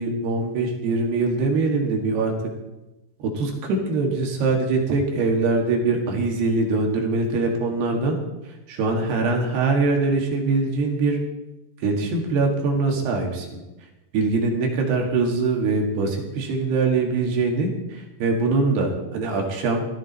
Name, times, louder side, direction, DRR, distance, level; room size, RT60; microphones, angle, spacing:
voice 1, 0.0-2.3 3.2-8.2 8.7-11.2 11.8-13.6 14.1-19.9, right 3 dB, 70° right, 1 dB, 4.0 m, -23 dB
16.5 x 14.5 x 4.3 m, 1.0 s
omnidirectional pair, 4.9 m